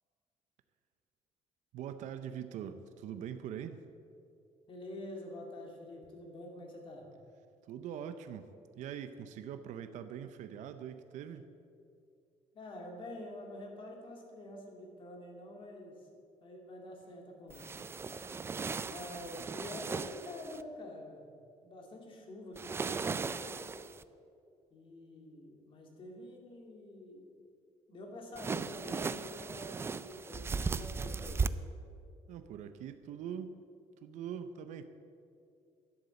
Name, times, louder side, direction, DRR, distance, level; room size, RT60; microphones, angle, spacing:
voice 1, 1.7-3.8 7.7-8.5 8.7-11.5 32.3-33.5 34.0-34.8, right 8 dB, 70° right, 10 dB, 0.6 m, -43 dB
voice 2, 4.7-7.1 12.5-16.1 16.4-18.1 18.9-21.3 21.6-23.7 24.7-27.4 27.9-31.5, left 1 dB, 40° left, 1 dB, 2.3 m, -47 dB
sound 1, 17.5-20.6 22.5-24.0 28.3-31.5, right 5 dB, 20° right, 0.3 m, -37 dB
11.5 x 7.9 x 6.9 m, 2.5 s
cardioid pair, 140°, 13 cm